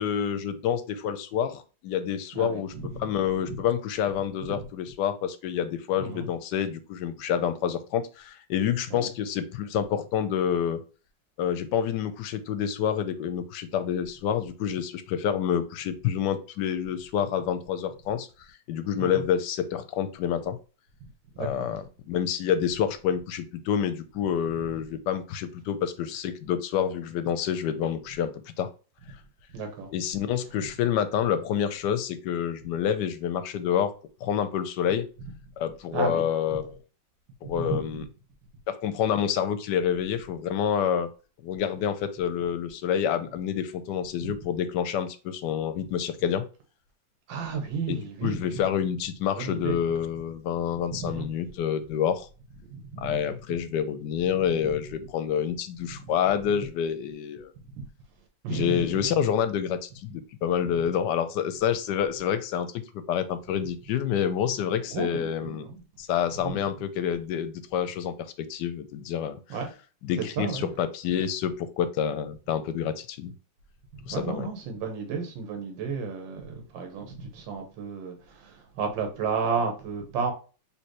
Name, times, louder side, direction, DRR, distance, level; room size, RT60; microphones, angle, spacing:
voice 1, 0.0-10.8 11.4-18.3 18.7-20.6 21.4-28.7 29.9-33.9 34.2-35.1 35.6-36.7 37.4-38.0 38.7-41.1 41.4-46.5 47.9-52.3 53.0-57.5 58.5-65.6 66.0-69.4 70.0-73.3 74.1-74.5, left 9 dB, 75° left, 1.1 m, -28 dB
voice 2, 2.3-3.1 4.5-4.6 6.0-6.3 8.9-9.1 19.0-19.2 21.3-21.7 29.5-29.9 35.9-36.2 37.4-38.1 47.3-48.8 49.4-49.8 50.9-51.3 52.7-53.4 54.6-54.8 57.7-57.9 58.4-59.3 64.9-65.8 66.4-66.7 69.5-69.7 70.2-70.7 73.9-80.3, right 5 dB, 90° right, 1.6 m, -33 dB
4.3 x 3.3 x 3.0 m
omnidirectional pair, 2.0 m